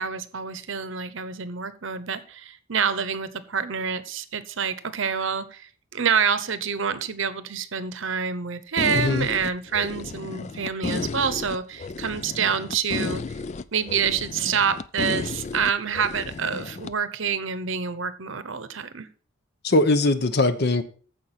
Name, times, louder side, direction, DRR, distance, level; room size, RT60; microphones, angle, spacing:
voice 1, 0.0-13.2 13.7-19.1, right 6 dB, 60° right, 0.8 m, -27 dB
sound 1, 8.8-16.9, left 4 dB, 35° left, 0.3 m, -33 dB
voice 2, 8.9-9.3 19.6-20.8, left 2 dB, 50° left, 0.8 m, -21 dB
14.5 x 5.1 x 4.2 m
head